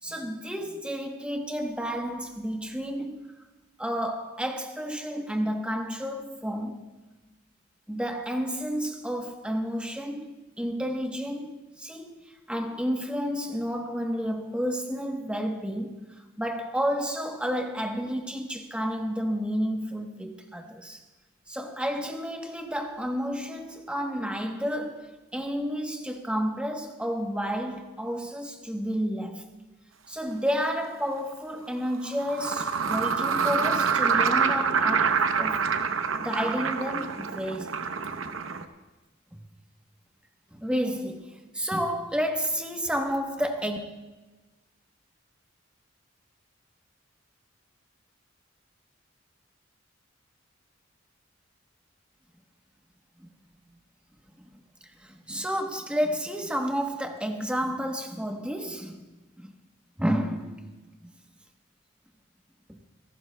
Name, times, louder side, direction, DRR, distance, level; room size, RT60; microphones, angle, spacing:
voice 1, 0.0-3.3 3.8-6.9 7.9-12.2 12.5-21.0 21.5-29.5 30.1-35.7 36.2-37.8 39.3-39.4 40.5-43.8 53.2-53.3 54.4-54.5 55.0-59.0 59.4-59.5 60.0-60.6 61.0-61.1 62.7-62.8, equal, 5° right, 4 dB, 1.0 m, -31 dB
sound 1, 30.3-30.4 31.9-38.6, right 6 dB, 75° right, 0.8 m, -26 dB
26.0 x 11.5 x 2.2 m, 1.2 s
head